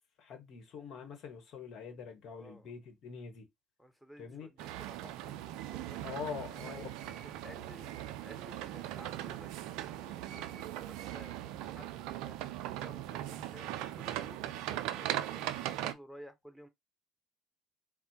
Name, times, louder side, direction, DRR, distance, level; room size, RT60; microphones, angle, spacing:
voice 1, 0.2-3.4 4.2-4.5 6.0-7.1, left 6 dB, 60° left, 1.3 m, -44 dB
voice 2, 2.3-2.7 3.8-6.9 7.4-12.3 12.7-16.7, equal, 5° left, 1.0 m, -54 dB
sound 1, 4.6-15.9, right 12 dB, 70° right, 0.4 m, -39 dB
4.1 x 2.1 x 4.3 m
hypercardioid pair, 60°, 0 cm